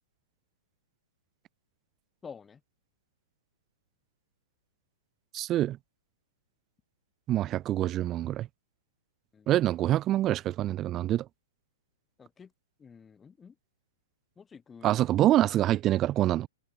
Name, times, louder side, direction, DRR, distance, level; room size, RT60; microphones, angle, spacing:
voice 1, 2.2-2.6 9.3-9.5 12.2-12.5 12.8-13.6 14.4-15.1, left 6 dB, 10° left, 5.8 m, -49 dB
voice 2, 5.3-5.8 7.3-8.5 9.5-11.2 14.8-16.5, right 13 dB, 20° right, 0.5 m, -25 dB
hypercardioid pair, 170°, 0 cm